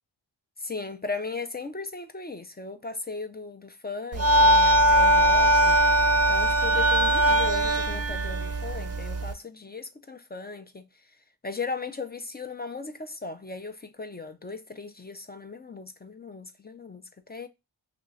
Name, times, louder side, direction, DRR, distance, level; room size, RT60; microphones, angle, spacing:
voice 1, 0.6-10.9 11.4-17.5, left 4 dB, 20° left, 0.4 m, -37 dB
sound 1, 4.1-9.3, right 1 dB, 35° right, 0.5 m, -21 dB
2.9 x 2.4 x 3.7 m
cardioid pair, 45°, 47 cm